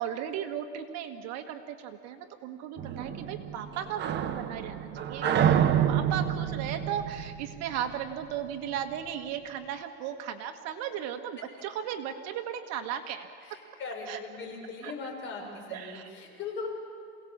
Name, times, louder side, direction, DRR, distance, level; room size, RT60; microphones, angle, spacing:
voice 1, 0.0-13.3 14.1-14.2 14.8-14.9 15.7-16.1, right 9 dB, 50° right, 6 dB, 1.5 m, -36 dB
sound 1, 2.8-8.2, right 9 dB, 30° right, 1.1 m, -28 dB
voice 2, 5.1-5.7 13.4-16.7, left 4 dB, 35° left, 0 dB, 6.6 m, -40 dB
28.0 x 18.0 x 7.3 m, 2.4 s
supercardioid pair, 140°, 34 cm